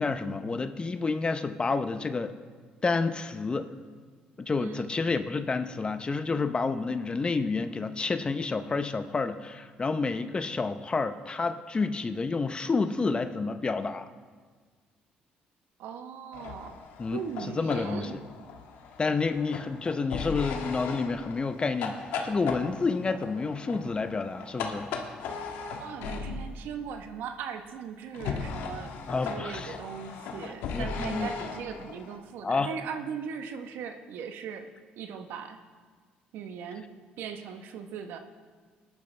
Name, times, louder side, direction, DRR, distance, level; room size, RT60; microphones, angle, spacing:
voice 1, 0.0-2.3 2.8-3.7 4.4-14.1 17.0-17.2 17.5-18.2 19.0-24.9 29.1-29.8 30.7-31.3 32.4-32.7, left 4 dB, 30° left, 10 dB, 0.7 m, -29 dB
voice 2, 4.6-5.0 15.8-16.7 17.1-18.2 25.8-28.9 29.2-34.7 35.0-35.6 36.3-36.9 37.2-38.2, right 7 dB, 80° right, 7 dB, 1.0 m, -39 dB
sound 1, 16.3-26.6 28.1-32.2, left 5 dB, 85° left, 1.4 m, -38 dB
19.5 x 10.5 x 3.3 m, 1.5 s
cardioid pair, 85°, 3 cm